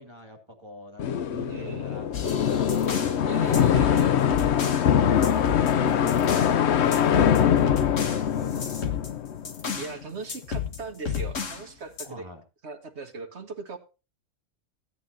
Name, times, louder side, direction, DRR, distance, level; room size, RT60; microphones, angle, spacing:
voice 1, 0.0-8.0 8.3-9.0 12.0-12.4, equal, 20° right, 3 dB, 2.7 m, -45 dB
sound 1, 1.0-9.8, left 9 dB, 65° left, 0.9 m, -23 dB
voice 2, 1.3-2.1 3.2-4.7 9.8-12.3 12.6-13.8, right 4 dB, 60° right, 6 dB, 1.9 m, -39 dB
sound 2, 2.1-3.2 3.5-4.9 5.2-6.6 6.9-10.0 10.3-11.7 12.0-12.1, left 7 dB, 80° left, 1.8 m, -32 dB
16.0 x 9.7 x 2.8 m, 0.31 s
omnidirectional pair, 1.3 m